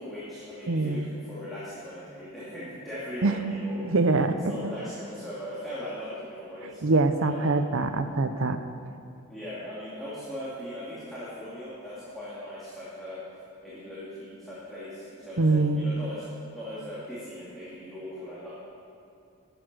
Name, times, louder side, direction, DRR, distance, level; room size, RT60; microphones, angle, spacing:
voice 1, 0.0-3.8 4.4-6.8 7.2-7.6 9.3-13.2 13.6-16.2 16.5-18.5, equal, ahead, -11 dB, 2.4 m, -39 dB
voice 2, 0.7-1.1 3.2-3.5 3.8-4.4 6.6-8.6 15.4-15.9, right 3 dB, 60° right, 9 dB, 0.7 m, -24 dB
11.0 x 8.3 x 6.1 m, 2.7 s
head